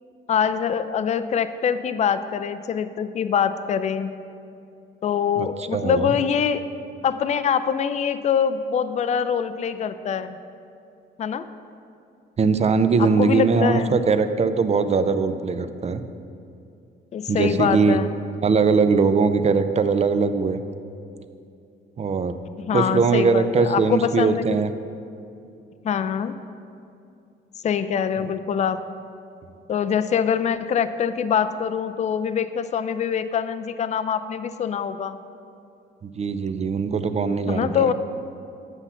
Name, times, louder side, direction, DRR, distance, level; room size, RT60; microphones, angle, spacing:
voice 1, 0.3-4.1 5.0-6.6 7.0-10.4 11.2-11.4 13.2-13.9 17.1-18.1 22.6-24.6 25.8-26.3 27.6-28.8 29.7-35.2 37.5-37.9, left 7 dB, 35° left, 11 dB, 0.4 m, -24 dB
voice 2, 5.4-6.2 12.4-16.0 17.3-18.0 18.4-20.6 22.0-22.3 22.7-24.7 28.2-28.3 36.0-37.9, right 4 dB, 35° right, 10 dB, 0.5 m, -21 dB
8.1 x 5.7 x 5.7 m, 2.5 s
cardioid pair, 90°, 20 cm